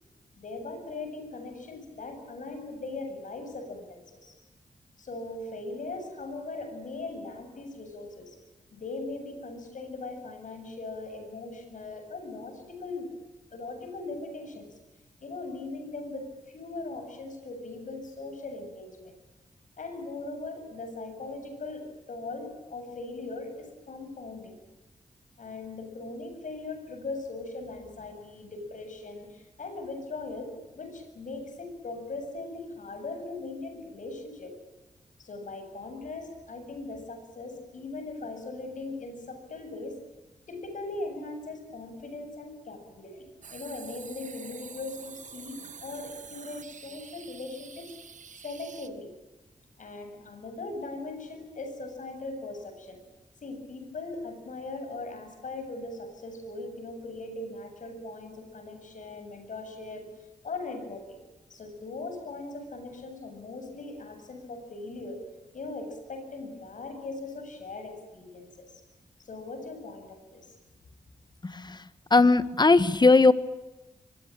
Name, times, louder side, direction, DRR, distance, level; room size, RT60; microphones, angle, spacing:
voice 1, 0.4-4.3 5.0-8.4 8.7-13.1 13.5-14.7 15.2-19.1 19.8-24.6 25.4-34.5 35.2-40.0 40.5-47.9 48.4-49.1 49.8-53.0 53.4-60.1 60.4-61.2 61.5-65.2 65.5-68.8 69.2-70.5, left 3 dB, 75° left, 6 dB, 7.8 m, -39 dB
sound 1, 43.4-48.9, right 6 dB, 70° right, 1.8 m, -47 dB
voice 2, 71.4-71.8 72.1-73.3, left 3 dB, 35° left, 14 dB, 1.6 m, -19 dB
24.5 x 22.5 x 9.0 m, 1.1 s
cardioid pair, 75°, 13 cm